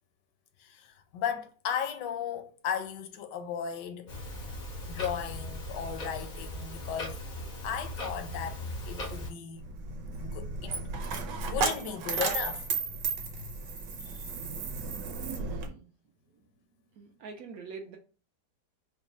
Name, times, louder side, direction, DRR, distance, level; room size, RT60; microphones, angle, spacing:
voice 1, 0.6-4.1 4.9-7.2 7.6-8.6 8.9-9.7 10.2-10.8 11.5-13.7 14.0-14.2, left 8 dB, 80° left, 1.2 m, -36 dB
Clock, 4.1-9.3, left 1 dB, 65° left, 0.4 m, -38 dB
Coin (dropping), 9.6-15.7, right 4 dB, 85° right, 1.3 m, -34 dB
voice 2, 15.2-15.9 16.3-16.4 16.9-18.0, right 5 dB, 70° right, 0.9 m, -44 dB
3.2 x 2.2 x 4.0 m
omnidirectional pair, 1.9 m